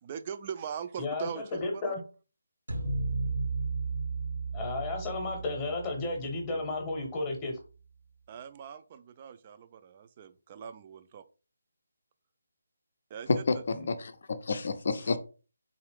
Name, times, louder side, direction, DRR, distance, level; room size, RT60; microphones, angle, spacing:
voice 1, 0.0-1.9 8.3-11.2 13.1-13.6 15.0-15.1, right 7 dB, 30° right, 0.3 m, -41 dB
voice 2, 1.0-2.0 4.5-7.6 13.7-13.9, left 2 dB, 20° left, 0.8 m, -33 dB
sound 1, 2.7-7.0, right 4 dB, 75° right, 0.8 m, -34 dB
voice 3, 13.3-15.2, left 4 dB, 55° left, 0.5 m, -29 dB
3.6 x 2.4 x 3.4 m
figure-of-eight pair, 150°, 0 cm